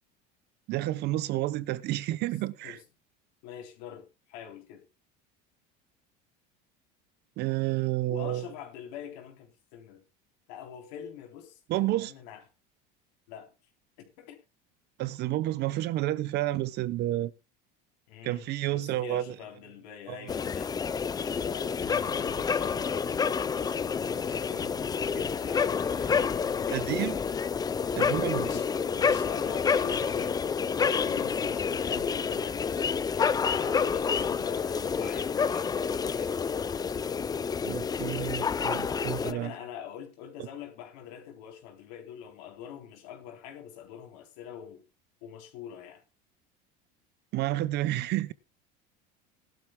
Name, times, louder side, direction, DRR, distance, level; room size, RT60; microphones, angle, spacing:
voice 1, 0.7-2.8 7.4-8.5 11.7-12.1 15.0-17.3 18.2-19.3 20.1-20.3 26.7-27.2 27.9-28.5 37.6-39.5 47.3-48.3, right 15 dB, 55° right, 0.8 m, -30 dB
voice 2, 3.4-4.8 8.1-10.0 10.5-12.4 13.3-13.5 14.0-14.4 18.1-18.5 18.7-20.8 21.4-27.5 28.4-32.6 33.1-36.4 39.1-44.8 45.2-46.0, left 9 dB, 80° left, 3.6 m, -44 dB
sound 1, 20.3-39.3, left 6 dB, 20° left, 0.5 m, -29 dB
18.5 x 12.0 x 2.3 m
supercardioid pair, 125°, 21 cm